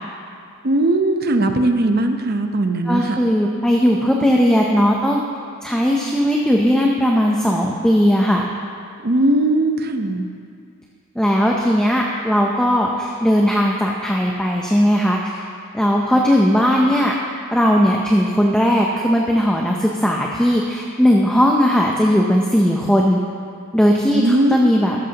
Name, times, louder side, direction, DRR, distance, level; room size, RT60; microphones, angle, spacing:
voice 1, 0.6-3.2 9.0-10.3 24.1-24.6, right 1 dB, 45° right, 6 dB, 0.7 m, -18 dB
voice 2, 2.9-5.2 5.6-8.4 11.2-15.4 15.7-17.1 17.5-23.2 23.7-25.0, equal, 5° left, -1 dB, 0.6 m, -17 dB
13.5 x 12.5 x 2.9 m, 2.3 s
head